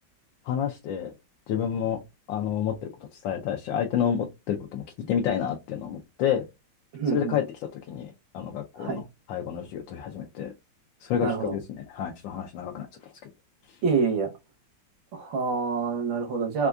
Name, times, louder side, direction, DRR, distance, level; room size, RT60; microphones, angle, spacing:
voice 1, 0.5-1.1 1.5-2.0 2.3-6.4 7.1-7.4 7.9-9.0 9.3-10.5 11.0-12.9, left 9 dB, 80° left, 1.4 m, -29 dB
voice 2, 6.9-7.4 8.8-9.0 11.2-11.6 13.8-14.3 15.1-16.7, right 5 dB, 85° right, 1.8 m, -27 dB
4.5 x 2.4 x 2.3 m
omnidirectional pair, 2.0 m